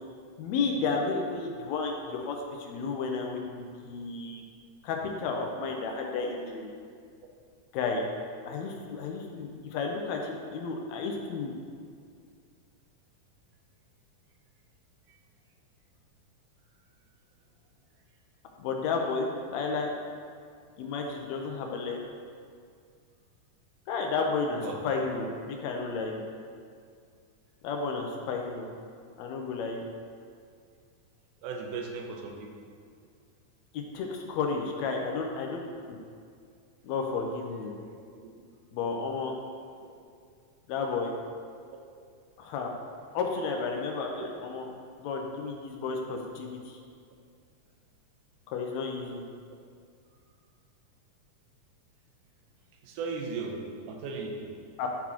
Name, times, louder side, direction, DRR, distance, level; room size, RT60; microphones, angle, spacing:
voice 1, 0.4-4.4 4.8-6.7 7.7-8.1 8.4-11.5 18.6-19.9 20.8-22.0 23.9-26.2 27.6-28.7 29.2-29.8 33.7-36.0 36.8-37.8 38.7-39.3 40.7-41.1 42.4-42.8 43.1-44.7 45.0-46.8 48.5-49.2 54.8-54.9, left 4 dB, 80° left, 1 dB, 1.7 m, -32 dB
voice 2, 31.4-32.3 44.2-44.3 53.0-53.5 53.9-54.4, right 5 dB, 80° right, 1 dB, 2.2 m, -35 dB
11.0 x 4.1 x 2.9 m, 2.2 s
omnidirectional pair, 3.7 m